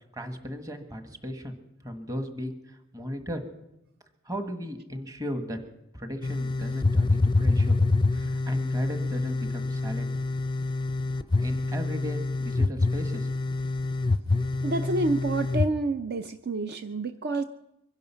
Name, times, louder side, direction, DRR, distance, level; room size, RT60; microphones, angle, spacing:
voice 1, 0.1-1.6 1.8-3.4 4.2-5.6 5.9-7.8 8.1-10.1 11.3-13.3, equal, 20° right, 6 dB, 1.5 m, -36 dB
sound 1, 6.2-15.7, left 3 dB, 20° left, 0.5 m, -26 dB
voice 2, 14.6-17.4, right 2 dB, 50° right, 9 dB, 0.6 m, -28 dB
23.5 x 10.5 x 5.7 m, 0.87 s
head